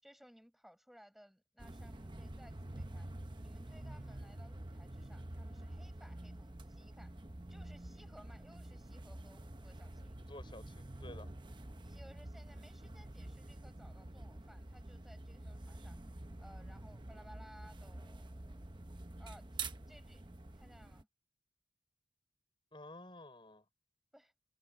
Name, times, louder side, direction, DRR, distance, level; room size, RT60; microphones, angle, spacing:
voice 1, 0.0-3.1 3.4-7.2 7.5-10.2 11.8-16.0 16.4-18.8 19.2-19.6 19.9-20.2 20.5-21.1 24.1-24.3, equal, ahead, 7.2 m, -61 dB
sound 1, 1.6-21.0, right 2 dB, 25° right, 0.9 m, -48 dB
voice 2, 10.0-11.3 22.7-23.6, left 1 dB, 25° left, 5.9 m, -52 dB
head